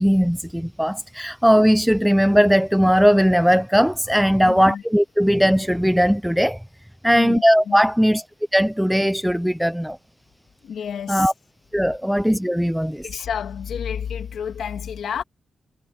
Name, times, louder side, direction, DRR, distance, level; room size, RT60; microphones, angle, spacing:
voice 1, 0.0-6.6 7.0-8.2 8.5-10.0 11.1-11.3 11.7-13.1, equal, ahead, 0.5 m, -18 dB
voice 2, 4.4-4.8 7.0-7.8 10.6-11.3 13.0-15.2, left 8 dB, 75° left, 2.2 m, -30 dB
wide cardioid pair, 155°, 0 cm